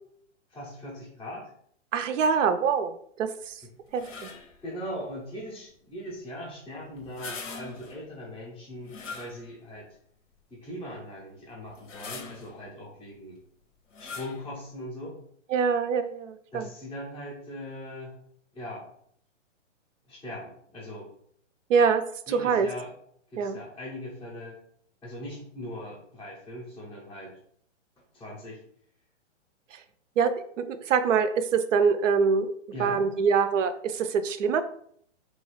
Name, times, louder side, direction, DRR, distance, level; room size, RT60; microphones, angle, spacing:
voice 1, 0.5-1.5 4.6-9.9 10.5-13.4 14.0-15.1 16.5-18.2 18.5-18.9 20.1-21.1 22.3-22.9 23.3-24.6 25.0-27.4 28.1-28.6 32.7-33.0, equal, 5° left, -10 dB, 0.4 m, -40 dB
voice 2, 1.9-3.6 3.9-4.3 15.5-16.7 21.7-22.7 23.4-23.6 29.7-29.8 30.2-32.5 32.8-34.6, right 6 dB, 80° right, 11 dB, 0.5 m, -25 dB
sound 1, 3.9-4.6 7.0-8.0 8.8-9.7 10.3-10.4 11.6-12.6 13.9-14.5, left 4 dB, 85° left, 0.8 m, -42 dB
2.8 x 2.4 x 3.0 m, 0.65 s
hypercardioid pair, 140°, 37 cm